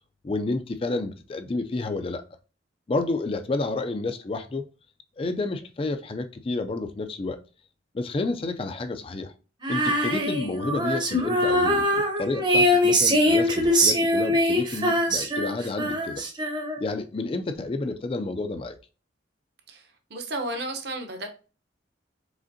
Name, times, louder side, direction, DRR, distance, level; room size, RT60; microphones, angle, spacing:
voice 1, 0.2-2.2 2.9-4.6 5.2-7.4 7.9-9.3 9.7-16.2 16.8-18.8, left 2 dB, 30° left, 0.3 m, -30 dB
Female singing, 9.6-17.0, equal, 25° right, 0.7 m, -23 dB
voice 2, 20.1-21.3, right 1 dB, 60° right, 0.9 m, -32 dB
5.0 x 3.5 x 2.7 m
head